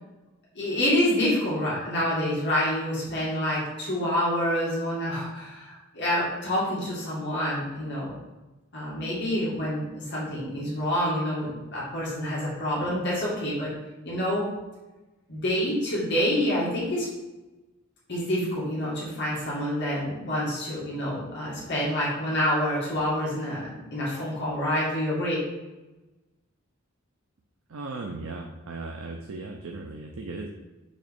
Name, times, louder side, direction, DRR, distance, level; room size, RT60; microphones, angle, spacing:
voice 1, 0.6-8.1 8.7-13.7 14.0-14.4 15.3-17.1 18.1-25.4, equal, 55° left, -7 dB, 2.0 m, -27 dB
voice 2, 27.7-30.5, right 3 dB, 80° right, 1 dB, 0.6 m, -37 dB
6.4 x 3.2 x 5.2 m, 1.1 s
head